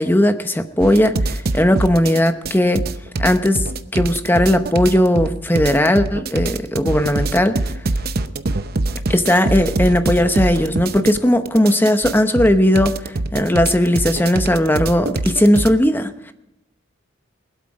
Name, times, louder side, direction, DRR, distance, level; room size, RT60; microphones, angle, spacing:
voice 1, 0.0-2.8 3.2-3.6 3.9-7.6 9.1-13.0 13.3-16.3, left 1 dB, 10° left, 8 dB, 0.9 m, -17 dB
sound 1, 0.8-15.7, right 2 dB, 50° right, 0.8 m, -24 dB
23.0 x 8.3 x 4.9 m, 0.86 s
head